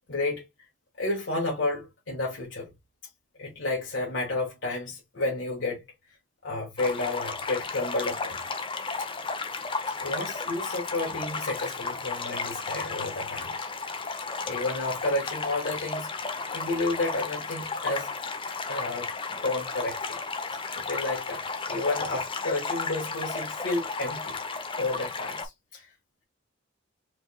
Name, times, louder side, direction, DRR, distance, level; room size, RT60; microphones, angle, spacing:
voice 1, 0.1-0.5 1.0-2.7 3.4-5.8 6.4-8.4 9.0-9.1 10.0-13.7 14.5-18.1 18.7-20.2 20.8-24.3 24.8-25.9, left 2 dB, 70° left, 1.5 m, -31 dB
sound 1, 6.8-25.5, left 4 dB, 25° left, 0.7 m, -34 dB
4.8 x 3.4 x 2.3 m
head